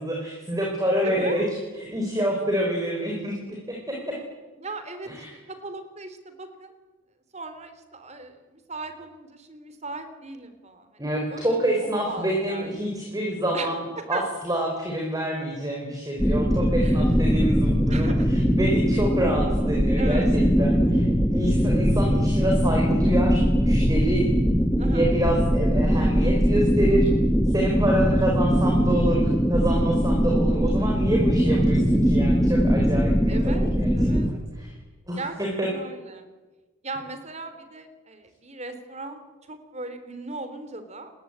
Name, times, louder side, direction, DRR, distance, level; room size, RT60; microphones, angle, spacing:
voice 1, 0.0-4.2 5.0-5.3 11.0-24.3 24.8-27.1 27.5-29.2 29.5-33.9 34.5-34.7 35.1-35.7, right 1 dB, 15° right, 0 dB, 4.5 m, -27 dB
voice 2, 1.0-1.5 4.6-5.1 5.5-6.7 7.3-11.5 11.8-12.7 13.5-14.3 16.8-17.0 17.9-18.3 20.0-20.3 24.8-25.2 33.3-34.3 35.2-35.4 35.7-36.3 36.8-41.1, right 2 dB, 30° right, 9 dB, 3.5 m, -37 dB
sound 1, 16.2-34.3, equal, 5° left, 2.0 m, -21 dB
29.5 x 20.5 x 8.9 m, 1.3 s
head